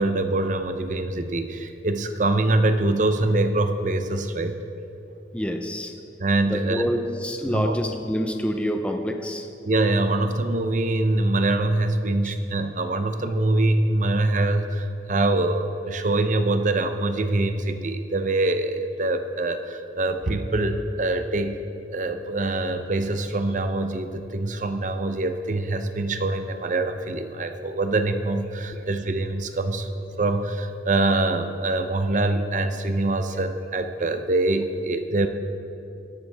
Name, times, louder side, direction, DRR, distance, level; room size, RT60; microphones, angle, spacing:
voice 1, 0.0-4.5 6.2-6.8 7.5-7.8 9.6-21.6 21.9-29.9 30.2-35.3, right 2 dB, 45° right, 8 dB, 0.7 m, -24 dB
voice 2, 5.3-5.9 6.4-9.5 12.2-12.3, equal, 5° left, 4 dB, 0.6 m, -27 dB
16.5 x 12.5 x 3.5 m, 2.8 s
head